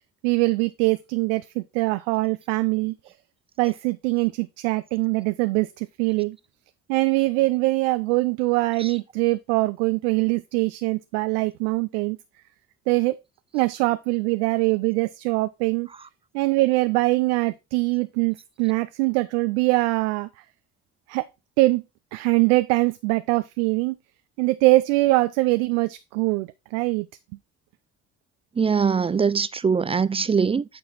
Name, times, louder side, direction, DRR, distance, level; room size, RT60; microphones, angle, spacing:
voice 1, 0.2-3.1 3.6-6.4 6.9-12.2 12.9-13.2 13.5-15.9 16.3-20.3 21.1-21.2 21.6-21.8 22.1-23.9 24.4-27.1, right 22 dB, 75° right, 0.5 m, -23 dB
voice 2, 28.6-30.6, right 6 dB, 15° right, 0.3 m, -22 dB
8.6 x 4.8 x 4.0 m
hypercardioid pair, 55°, 35 cm